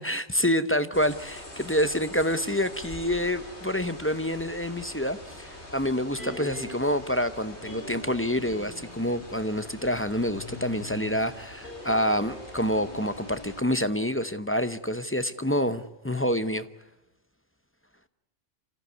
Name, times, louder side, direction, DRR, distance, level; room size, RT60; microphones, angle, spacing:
voice 1, 0.0-16.6, equal, 15° left, 11 dB, 0.8 m, -27 dB
sound 1, 0.9-13.6, left 1 dB, 90° left, 5.1 m, -44 dB
sound 2, 6.2-7.0 7.6-9.3 10.3-14.5 14.8-14.9, left 2 dB, 55° left, 7.2 m, -43 dB
27.0 x 14.5 x 9.5 m, 1.0 s
omnidirectional pair, 1.1 m